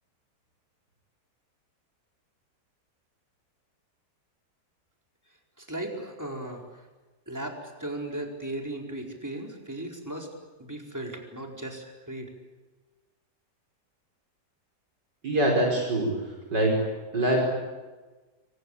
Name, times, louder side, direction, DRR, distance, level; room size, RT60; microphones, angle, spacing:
voice 1, 5.6-6.6 7.3-10.3 10.6-12.3, right 1 dB, 10° right, 1 dB, 4.6 m, -36 dB
voice 2, 15.2-16.1 16.5-16.8 17.1-17.4, right 1 dB, 85° right, 0 dB, 6.0 m, -23 dB
29.0 x 23.5 x 8.6 m, 1.2 s
omnidirectional pair, 1.8 m